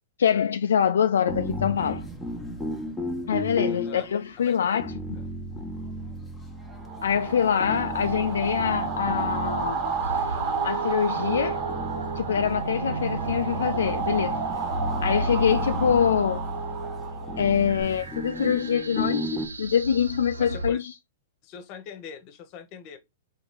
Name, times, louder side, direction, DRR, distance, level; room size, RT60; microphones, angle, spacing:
voice 1, 0.2-2.1 3.3-4.9 7.0-9.8 10.6-11.6 12.2-14.4 15.0-16.4 17.4-20.9, left 8 dB, 75° left, 0.3 m, -24 dB
sound 1, 1.3-19.5, equal, 5° left, 1.1 m, -35 dB
voice 2, 3.7-4.1 4.4-4.8 20.4-20.8 21.4-23.0, left 6 dB, 40° left, 1.0 m, -42 dB
sound 2, 6.7-17.8, right 5 dB, 35° right, 1.5 m, -31 dB
sound 3, 10.0-20.7, right 2 dB, 90° right, 0.5 m, -34 dB
4.2 x 3.4 x 3.6 m
hypercardioid pair, 110°, 0 cm